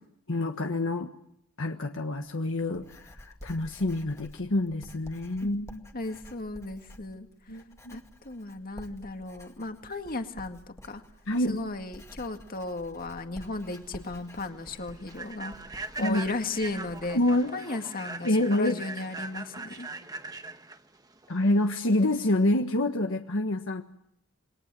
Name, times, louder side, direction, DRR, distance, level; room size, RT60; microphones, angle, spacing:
voice 1, 0.3-1.1 1.6-5.8 7.5-8.0 11.3-11.6 16.0-16.2 17.1-17.5 18.2-18.7 21.3-23.8, left 1 dB, 65° left, 5 dB, 1.4 m, -27 dB
Writing, 2.1-17.5, equal, 15° left, 2.2 m, -51 dB
voice 2, 5.9-7.6 7.9-11.0 11.5-17.2 17.5-19.9, left 2 dB, 45° left, 6 dB, 2.1 m, -35 dB
Human voice / Train, 13.4-22.3, right 3 dB, 20° right, 1.2 m, -41 dB
27.5 x 22.0 x 7.7 m, 0.78 s
head